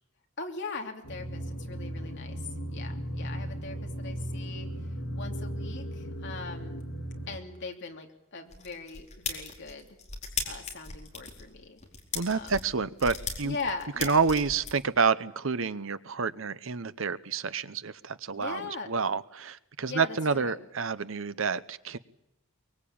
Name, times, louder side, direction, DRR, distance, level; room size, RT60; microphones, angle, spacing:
voice 1, 0.4-2.4 2.7-4.7 5.1-6.8 7.3-9.9 10.4-11.8 12.3-12.5 13.4-14.2 18.4-18.9 19.9-20.7, left 3 dB, 60° left, 3 dB, 3.0 m, -40 dB
sound 1, 1.0-7.4, equal, 85° left, 2.9 m, -36 dB
sound 2, 8.5-14.7, left 5 dB, 35° left, 4.5 m, -37 dB
voice 2, 12.1-13.6 14.0-22.0, right 5 dB, 70° right, 14 dB, 0.9 m, -29 dB
23.5 x 22.0 x 8.8 m, 0.83 s
head